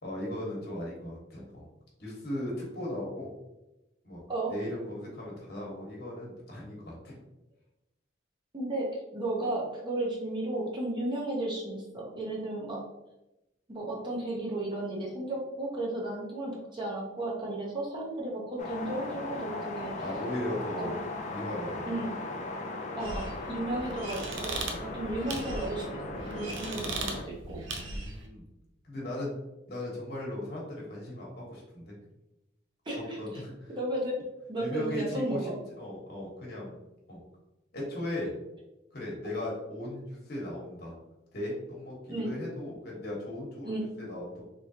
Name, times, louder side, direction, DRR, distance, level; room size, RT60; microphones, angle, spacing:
voice 1, 0.0-1.6 2.0-3.3 4.0-4.2 4.5-7.2 20.0-20.9 21.3-21.9 24.6-24.8 26.4-27.0 27.8-28.5 28.8-29.3 29.7-31.9 33.2-33.7 34.6-35.5 35.8-36.8 37.1-37.2 37.7-38.3 38.9-40.9 41.3-44.4, left 1 dB, 55° left, -3 dB, 1.2 m, -37 dB
voice 2, 8.5-12.8 13.7-19.9 20.8-20.9 21.9-22.1 23.0-26.0 26.3-27.6 32.9-33.4 33.8-34.2 34.5-35.5 42.1-42.3 43.6-43.9, right 1 dB, 25° right, -4 dB, 0.8 m, -34 dB
sound 1, 18.6-27.2, left 2 dB, 40° left, 0.5 m, -38 dB
sound 2, 23.0-28.3, right 3 dB, 85° right, 0.6 m, -38 dB
3.7 x 3.1 x 2.8 m, 0.95 s
head